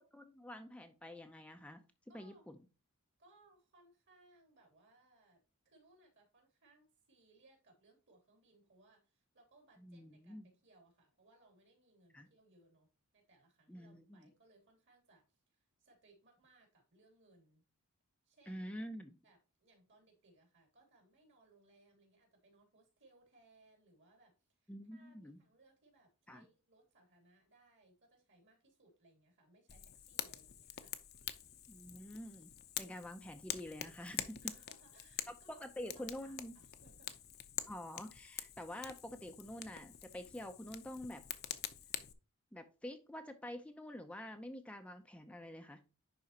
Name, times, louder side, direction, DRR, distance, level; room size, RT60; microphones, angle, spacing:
voice 1, 0.1-1.8 2.1-2.6 9.8-10.5 12.1-12.3 13.7-14.3 18.5-19.2 24.7-25.4 26.3-26.4 31.7-34.5 35.3-36.5 37.7-41.2 42.5-45.8, left 1 dB, 5° left, 6 dB, 0.6 m, -47 dB
voice 2, 2.1-2.5 3.2-12.9 13.1-17.6 18.2-18.7 19.2-30.9 34.4-35.6 35.9-37.1, right 2 dB, 55° right, 2 dB, 3.3 m, -68 dB
Fire, 29.7-42.1, left 11 dB, 45° left, 0.7 m, -46 dB
10.5 x 4.2 x 2.9 m, 0.32 s
head